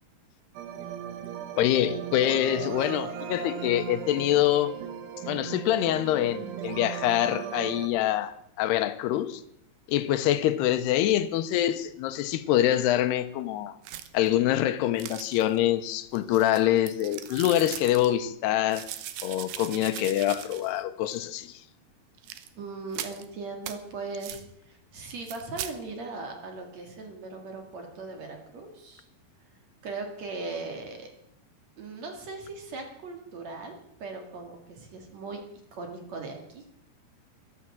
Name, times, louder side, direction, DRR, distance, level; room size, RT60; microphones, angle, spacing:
sound 1, 0.6-7.9, right 9 dB, 90° right, 3.4 m, -37 dB
voice 1, 1.6-4.7 5.3-9.4 9.9-13.8 14.1-18.9 19.2-21.6, left 12 dB, 90° left, 2.9 m, -25 dB
sound 2, 13.8-14.3 15.0-15.6 16.1-18.1 18.7-20.8 21.1-21.2 22.2-22.5 22.9-23.2 23.6-23.8 24.2-24.4 25.1-25.7, right 12 dB, 70° right, 2.4 m, -40 dB
voice 2, 22.6-29.0 29.8-31.1 31.8-35.4 35.7-36.6, right 3 dB, 50° right, 2.8 m, -39 dB
13.0 x 12.5 x 7.5 m
omnidirectional pair, 4.7 m